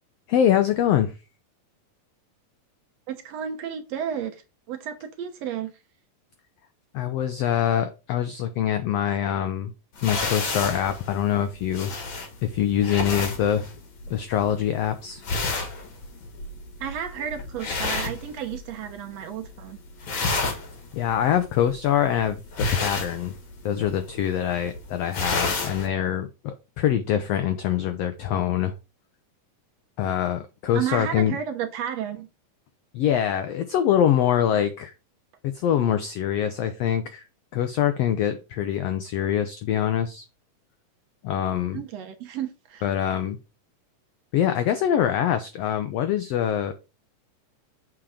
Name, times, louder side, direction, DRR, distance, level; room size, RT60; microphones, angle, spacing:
voice 1, 0.3-1.1 6.9-9.7 10.0-12.0 12.4-13.7 14.1-15.2 20.9-23.4 23.6-28.7 30.0-31.4 32.9-34.9 35.4-37.2 37.5-40.2 41.2-41.8 42.8-43.4 44.3-46.7, left 10 dB, 90° left, 1.4 m, -24 dB
voice 2, 3.1-4.4 4.7-5.7 16.8-19.8 30.7-32.3 41.7-42.9, right 9 dB, 70° right, 1.7 m, -32 dB
sound 1, 10.0-18.9 19.2-19.6 19.9-25.9, left 3 dB, 45° left, 1.9 m, -31 dB
7.7 x 4.5 x 4.9 m
omnidirectional pair, 3.7 m